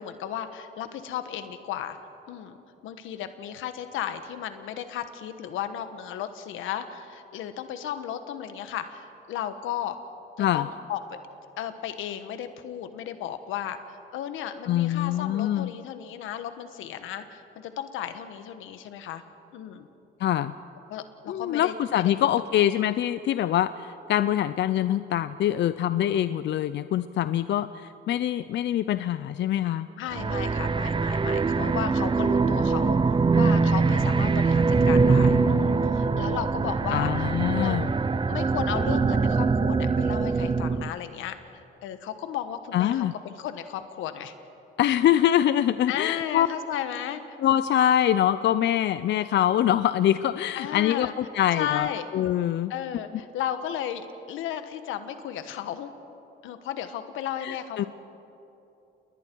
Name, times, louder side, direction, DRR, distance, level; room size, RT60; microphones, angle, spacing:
voice 1, 0.0-2.0 2.3-2.6 2.8-10.0 10.4-11.2 11.6-19.2 19.5-19.9 20.9-22.3 30.0-37.3 37.6-41.4 41.8-44.3 45.9-47.2 50.5-51.1 51.5-52.1 52.7-55.9 56.4-57.9, left 10 dB, 90° left, 9 dB, 1.3 m, -34 dB
voice 2, 14.7-15.7 20.2-20.5 21.3-29.9 36.9-37.9 42.7-43.1 44.8-46.5 47.4-52.7 57.4-57.8, left 11 dB, 65° left, 13 dB, 0.5 m, -24 dB
sound 1, 30.1-40.9, right 4 dB, 25° right, 0.6 m, -23 dB
29.5 x 21.0 x 4.6 m, 3.0 s
cardioid pair, 90°, 20 cm